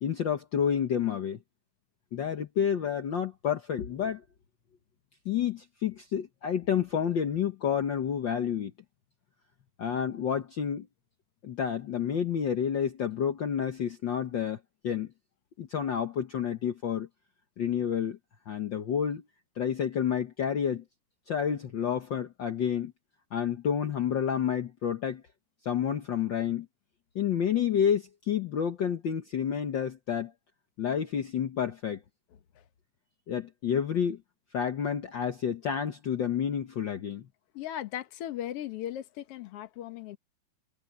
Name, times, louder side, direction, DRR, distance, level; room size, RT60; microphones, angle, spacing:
voice 1, 0.0-1.4 2.1-4.2 5.2-8.7 9.8-10.9 11.4-15.1 15.6-17.1 17.6-18.2 18.5-19.2 19.6-20.8 21.3-22.9 23.3-25.2 25.6-26.7 27.1-30.3 30.8-32.0 33.3-34.2 34.5-37.2, left 8 dB, 80° left, 1.0 m, -29 dB
voice 2, 37.5-40.2, left 12 dB, 60° left, 1.8 m, -37 dB
omnidirectional pair, 3.8 m